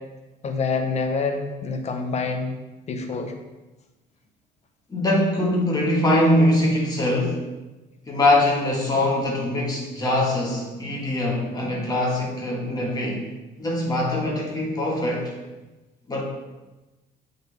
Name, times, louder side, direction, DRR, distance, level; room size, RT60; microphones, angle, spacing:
voice 1, 0.4-2.5 2.9-3.3, left 4 dB, 40° left, 5 dB, 0.9 m, -26 dB
voice 2, 4.9-7.4 8.1-13.3 13.6-15.4 16.1-16.2, left 1 dB, 20° left, -2 dB, 1.7 m, -22 dB
8.3 x 4.0 x 3.5 m, 1.1 s
cardioid pair, 110°, 17 cm